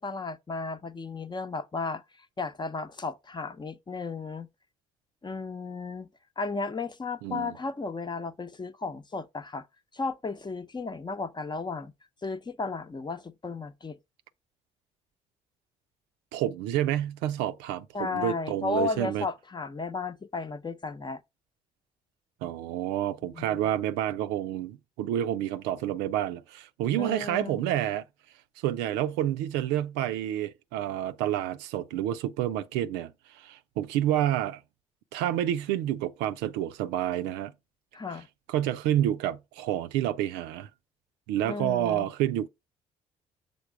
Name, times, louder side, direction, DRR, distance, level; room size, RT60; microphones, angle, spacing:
voice 1, 0.0-4.5 5.2-6.1 6.4-9.7 9.9-11.9 12.2-14.0 17.9-21.2 23.3-23.7 27.0-27.8 37.9-38.3 41.4-42.1, left 4 dB, 25° left, 0.8 m, -34 dB
voice 2, 7.2-7.5 16.3-19.3 22.4-28.0 28.6-34.6 35.1-37.5 38.5-40.7 41.3-42.5, right 12 dB, 70° right, 0.6 m, -29 dB
6.9 x 4.1 x 4.7 m
figure-of-eight pair, 50°, 19 cm